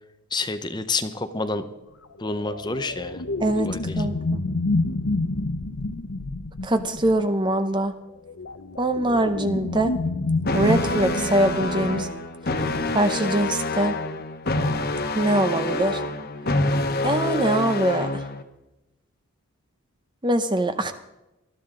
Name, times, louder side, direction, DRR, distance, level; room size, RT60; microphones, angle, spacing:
voice 1, 0.3-1.6 2.2-3.2 3.6-4.0, left 3 dB, 20° left, 10 dB, 0.8 m, -28 dB
sound 1, 2.2-7.3 8.3-12.0, left 2 dB, 70° left, 0.8 m, -28 dB
voice 2, 4.0-4.4 6.6-7.9 8.8-9.9 10.5-12.1 12.9-14.0 15.1-16.0 17.0-18.2 20.2-20.9, right 1 dB, 20° right, 9 dB, 0.7 m, -23 dB
sound 2, 10.4-18.4, left 2 dB, 45° left, 1.2 m, -26 dB
20.0 x 13.0 x 3.8 m, 0.96 s
head